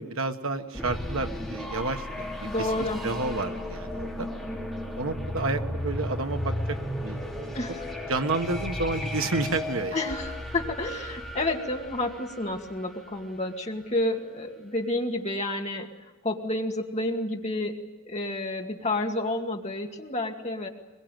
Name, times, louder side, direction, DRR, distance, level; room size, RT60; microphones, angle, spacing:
voice 1, 0.0-4.3 5.0-7.6 8.1-10.0, right 3 dB, 75° right, 7 dB, 1.5 m, -31 dB
sound 1, 0.7-13.5, left 1 dB, ahead, 3.4 m, -34 dB
voice 2, 2.4-3.0 7.5-7.9 9.9-17.8 18.1-20.7, left 2 dB, 30° left, 2 dB, 2.2 m, -30 dB
23.0 x 21.5 x 9.2 m, 1.2 s
head